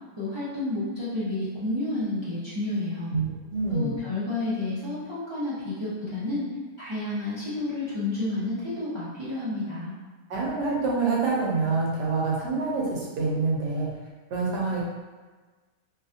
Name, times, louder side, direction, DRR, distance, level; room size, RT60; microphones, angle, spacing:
voice 1, 0.2-3.1 3.7-6.4 6.8-9.9, left 2 dB, 45° right, -12 dB, 0.3 m, -30 dB
voice 2, 3.1-4.0 10.3-13.9 14.3-14.8, right 4 dB, 85° right, -4 dB, 1.3 m, -26 dB
3.1 x 2.4 x 2.5 m, 1.3 s
omnidirectional pair, 1.8 m